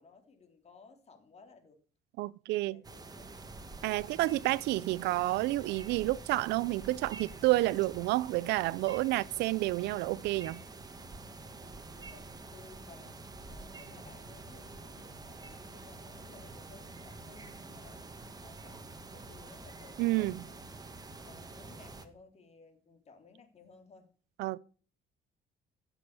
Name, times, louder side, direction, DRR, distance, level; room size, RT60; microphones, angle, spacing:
voice 1, 0.0-1.8 2.5-3.3 11.6-18.1 18.4-20.8 21.2-24.1, left 4 dB, 40° left, 3.4 m, -58 dB
voice 2, 2.2-2.8 3.8-10.6 20.0-20.4 24.4-24.6, right 18 dB, 85° right, 0.5 m, -30 dB
sound 1, 2.8-22.1, right 3 dB, 20° right, 1.8 m, -47 dB
15.5 x 7.3 x 6.7 m
cardioid pair, 110°, 17 cm